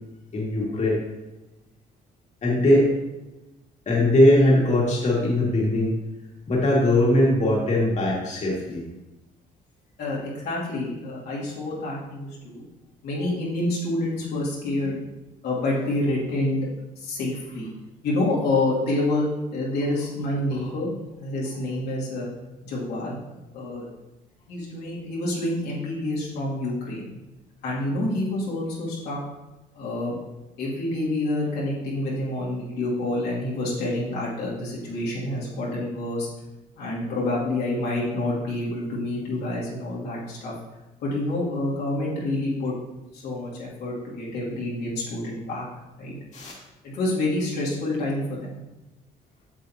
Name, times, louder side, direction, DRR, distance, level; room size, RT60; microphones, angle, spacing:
voice 1, 0.3-1.0 2.4-2.9 3.9-5.9 6.5-8.8 13.2-13.3 20.6-20.7 46.3-46.5, left 1 dB, 45° left, -4 dB, 2.2 m, -20 dB
voice 2, 10.0-12.6 13.0-15.0 15.4-16.7 17.0-17.7 18.0-19.3 19.5-22.3 22.6-23.2 23.5-23.9 24.5-27.1 27.6-29.2 29.7-30.2 30.6-36.3 36.8-40.5 41.0-42.7 43.1-45.6 46.0-46.2 46.8-48.6, left 2 dB, 80° left, -6 dB, 2.5 m, -28 dB
8.3 x 6.7 x 2.9 m, 1.0 s
cardioid pair, 85°, 17 cm